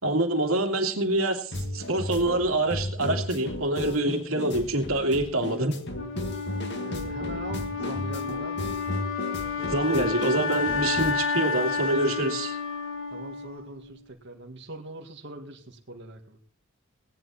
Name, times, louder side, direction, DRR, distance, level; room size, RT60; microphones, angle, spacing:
voice 1, 0.0-5.8 9.7-12.5, right 1 dB, 90° right, 3 dB, 2.7 m, -26 dB
sound 1, 1.5-11.1, left 1 dB, 55° left, 1.9 m, -35 dB
Wind instrument woodwind instrument, 5.9-14.0, left 5 dB, 70° left, 3.0 m, -31 dB
voice 2, 6.8-8.6 13.1-16.4, right 2 dB, 55° right, 2 dB, 2.1 m, -41 dB
18.5 x 10.5 x 4.3 m, 0.43 s
head